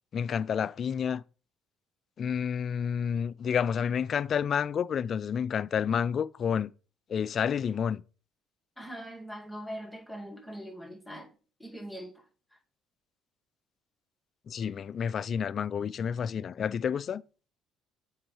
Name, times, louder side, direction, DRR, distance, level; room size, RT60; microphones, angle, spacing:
voice 1, 0.1-1.2 2.2-6.7 7.1-8.0 14.5-17.2, left 7 dB, 50° left, 0.3 m, -29 dB
voice 2, 8.8-11.3 11.6-12.1, equal, ahead, 2.2 m, -41 dB
7.4 x 5.3 x 3.2 m
hypercardioid pair, 60°, 0 cm